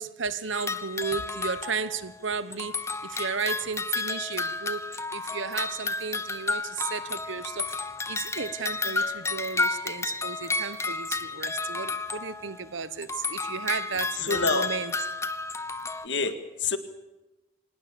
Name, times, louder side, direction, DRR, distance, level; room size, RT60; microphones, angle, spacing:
voice 1, 0.0-14.9, right 5 dB, 80° right, 1.1 m, -34 dB
sound 1, 0.5-2.3 2.5-12.7 13.0-16.1, left 3 dB, 15° left, 0.9 m, -32 dB
voice 2, 14.2-14.7 16.0-16.8, left 4 dB, 65° left, 2.0 m, -27 dB
25.5 x 19.5 x 7.0 m
head